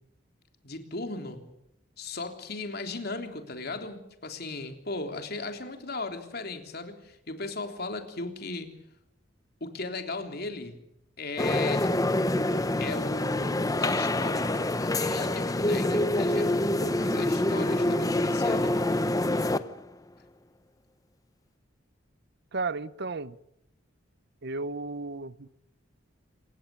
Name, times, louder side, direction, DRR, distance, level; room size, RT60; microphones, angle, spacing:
voice 1, 0.6-1.4 2.0-8.7 9.6-10.8 11.2-11.9 12.8-18.9, left 3 dB, 55° left, 3.5 m, -37 dB
sound 1, 11.4-19.8, left 1 dB, 20° left, 0.9 m, -26 dB
voice 2, 22.5-23.4 24.4-25.5, right 3 dB, 60° right, 0.9 m, -33 dB
28.0 x 16.0 x 8.6 m
head